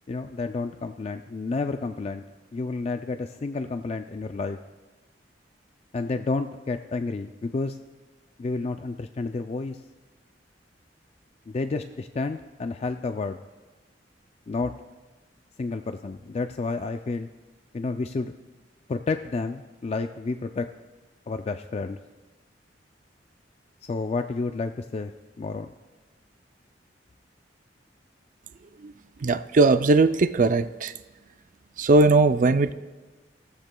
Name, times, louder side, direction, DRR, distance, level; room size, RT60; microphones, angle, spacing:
voice 1, 0.1-2.2 2.5-4.6 5.9-7.8 8.4-9.8 11.5-13.4 14.5-14.7 15.6-17.3 17.7-18.3 18.9-20.7 21.3-22.0 23.9-25.1 25.4-25.7, left 3 dB, 35° left, 7 dB, 0.3 m, -30 dB
voice 2, 29.2-30.9 31.8-32.7, right 3 dB, 45° right, 12 dB, 0.4 m, -19 dB
16.5 x 14.0 x 2.3 m, 1.2 s
head